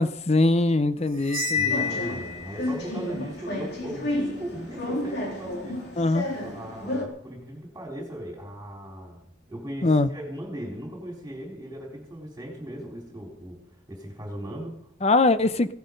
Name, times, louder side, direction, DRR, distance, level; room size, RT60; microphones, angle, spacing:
voice 1, 0.0-2.2 6.0-6.3 9.8-10.1 15.0-15.7, left 2 dB, 35° left, 13 dB, 0.7 m, -22 dB
Cymbal, 1.2-2.7, left 5 dB, 90° right, 1.4 m, -28 dB
voice 2, 1.5-5.8 6.4-13.6 13.9-14.9, equal, 15° right, -1 dB, 4.0 m, -38 dB
sound 1, 1.7-7.0, left 1 dB, 55° left, 3.4 m, -32 dB
17.0 x 11.5 x 5.4 m, 0.70 s
head